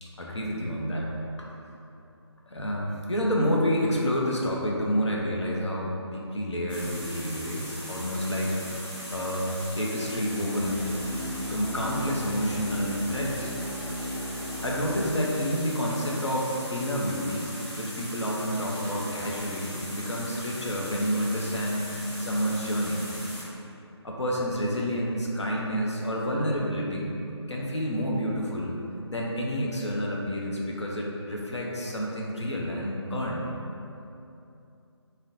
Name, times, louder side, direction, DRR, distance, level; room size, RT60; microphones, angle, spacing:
voice 1, 0.0-1.5 2.5-8.6 9.1-10.9 11.5-13.5 14.6-17.5 17.8-23.0 24.0-27.2 27.5-28.8 29.1-33.5, equal, 80° left, -2 dB, 0.6 m, -29 dB
sound 1, 6.7-23.4, equal, 20° left, 0.8 m, -39 dB
sound 2, 9.7-15.0, left 1 dB, 45° left, 1.3 m, -37 dB
3.8 x 2.1 x 2.6 m, 2.7 s
figure-of-eight pair, 155°, 15 cm